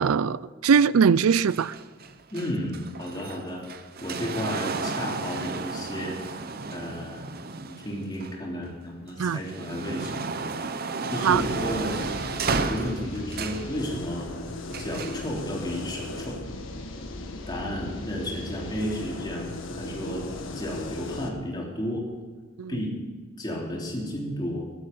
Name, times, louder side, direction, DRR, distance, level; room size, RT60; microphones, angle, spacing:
voice 1, 0.0-1.7 9.2-9.4 11.2-11.4 22.6-22.7, right 6 dB, 90° right, 0.4 m, -21 dB
sound 1, 1.5-8.7 9.2-13.7 14.7-15.3 16.2-16.3, right 4 dB, 45° right, 0.7 m, -33 dB
voice 2, 2.3-3.6 4.0-6.4 6.7-7.3 7.6-12.0 12.5-14.3 14.8-16.4 17.5-22.0 22.7-22.9 23.4-24.6, equal, 20° left, 3.5 m, -33 dB
sound 2, 11.3-21.3, left 2 dB, 65° left, 1.6 m, -37 dB
16.0 x 11.5 x 5.4 m
head